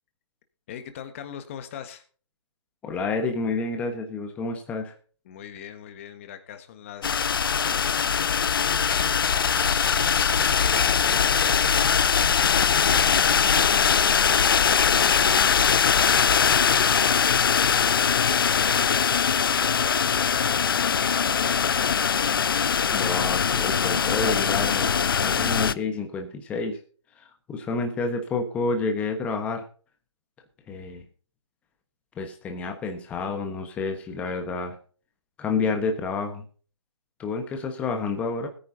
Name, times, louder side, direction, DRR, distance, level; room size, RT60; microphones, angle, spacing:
voice 1, 0.7-2.0 5.2-7.3 7.6-9.5 10.6-11.8 12.9-18.9 19.4-22.2, left 9 dB, 25° left, 9 dB, 1.5 m, -42 dB
voice 2, 2.8-4.9 22.9-24.9 25.2-26.8 27.2-29.6 30.7-31.0 32.2-34.7 35.4-36.4 37.2-38.5, left 3 dB, 10° left, 5 dB, 1.3 m, -29 dB
sound 1, 7.0-25.7, left 7 dB, 45° left, 0.5 m, -21 dB
sound 2, 9.5-19.5, left 2 dB, 75° left, 2.3 m, -42 dB
20.5 x 9.6 x 2.8 m, 0.41 s
hypercardioid pair, 160°, 16 cm